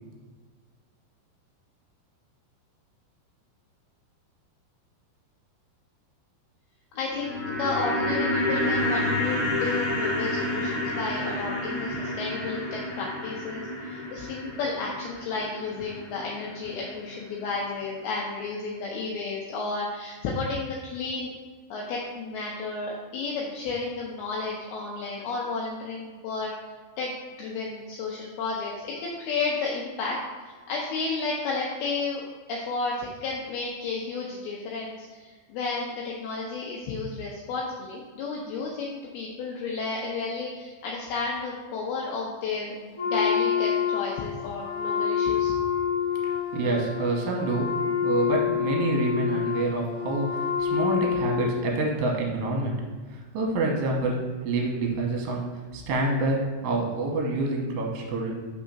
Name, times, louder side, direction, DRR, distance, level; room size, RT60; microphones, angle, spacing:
voice 1, 7.0-21.3 21.7-26.5 27.0-27.1 27.4-30.2 30.7-32.2 32.5-45.6, left 3 dB, 80° left, -3 dB, 2.3 m, -32 dB
sound 1, 7.0-17.2 17.5-17.6, left 1 dB, 35° left, 2.0 m, -30 dB
Wind instrument woodwind instrument, 42.9-51.8, left 8 dB, 60° left, 1.6 m, -27 dB
voice 2, 46.2-47.7 48.0-52.7 53.1-55.5 55.7-58.3, right 2 dB, 80° right, 0 dB, 3.1 m, -27 dB
6.4 x 3.6 x 5.7 m, 1.4 s
omnidirectional pair, 5.1 m